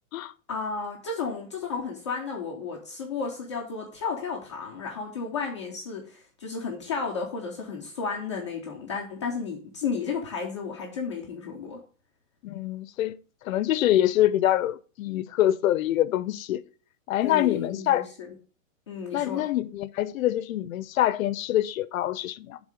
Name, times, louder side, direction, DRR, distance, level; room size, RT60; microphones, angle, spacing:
voice 1, 0.5-11.8 17.2-18.3 18.9-19.5, left 5 dB, 25° left, 0.4 m, -33 dB
voice 2, 12.4-13.2 13.4-16.6 17.1-18.1 19.1-22.6, left 13 dB, 80° left, 0.6 m, -25 dB
7.2 x 3.6 x 5.0 m
supercardioid pair, 175°, 41 cm